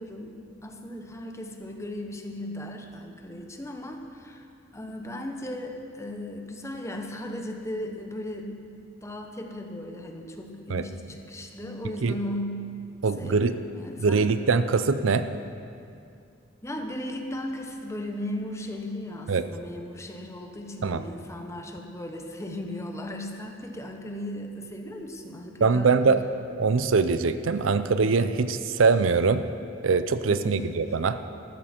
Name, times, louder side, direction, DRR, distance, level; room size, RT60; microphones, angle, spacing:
voice 1, 0.0-4.5 4.7-8.6 9.0-12.6 13.2-14.2 16.6-26.0 30.2-30.7, left 1 dB, 15° left, 3 dB, 1.0 m, -36 dB
voice 2, 13.0-13.6 14.0-15.3 19.3-19.4 20.8-21.0 25.6-26.2 26.6-29.4 29.8-31.2, right 4 dB, 90° right, 11 dB, 0.6 m, -22 dB
13.5 x 13.5 x 4.4 m, 2.4 s
head